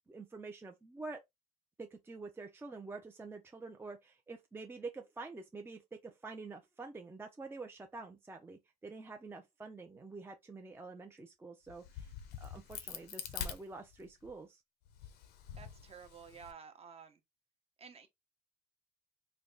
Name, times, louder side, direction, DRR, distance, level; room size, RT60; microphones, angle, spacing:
voice 1, 0.1-1.2 1.8-12.1 12.4-14.6, right 3 dB, 15° right, 0.5 m, -47 dB
Crack, 11.7-14.3 14.9-16.5, left 9 dB, 80° left, 0.7 m, -45 dB
voice 2, 15.5-17.2 17.8-18.1, right 6 dB, 35° right, 0.8 m, -52 dB
3.4 x 2.2 x 3.8 m
cardioid pair, 110°, 17 cm